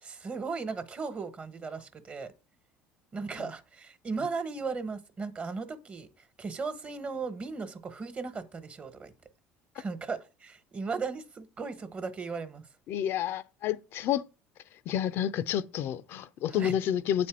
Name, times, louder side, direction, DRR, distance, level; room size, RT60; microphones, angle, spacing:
voice 1, 0.0-2.3 3.1-9.1 9.7-12.6 16.5-16.7, right 4 dB, 30° right, 1.3 m, -36 dB
voice 2, 12.9-14.3 14.9-17.3, left 10 dB, 60° left, 0.6 m, -29 dB
8.4 x 4.3 x 6.1 m
supercardioid pair, 100°, 4 cm